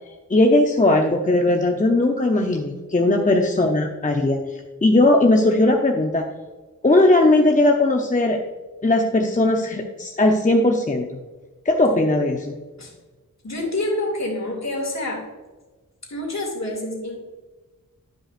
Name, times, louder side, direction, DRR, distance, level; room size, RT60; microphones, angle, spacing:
voice 1, 0.3-4.5 4.8-6.2 6.8-8.4 8.8-11.2 11.6-12.6, left 2 dB, 25° left, 2 dB, 0.7 m, -18 dB
voice 2, 13.4-15.3 16.0-17.2, left 1 dB, 55° left, 1 dB, 2.3 m, -27 dB
11.5 x 5.4 x 2.5 m, 1.2 s
cardioid pair, 50°, 33 cm